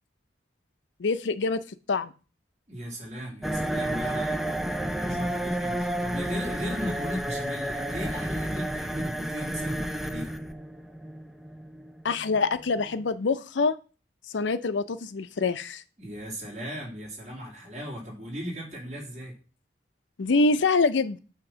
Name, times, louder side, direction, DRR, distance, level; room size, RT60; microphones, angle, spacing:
voice 1, 1.0-1.6 1.9-2.1 5.1-5.2 12.0-13.8 14.3-15.8 20.2-21.2, left 3 dB, 85° left, 13 dB, 0.5 m, -25 dB
voice 2, 2.7-10.4 16.0-19.3, equal, 40° right, -3 dB, 2.9 m, -37 dB
sound 1, 3.4-13.0, right 1 dB, ahead, 0.3 m, -31 dB
8.7 x 2.9 x 6.1 m, 0.35 s
head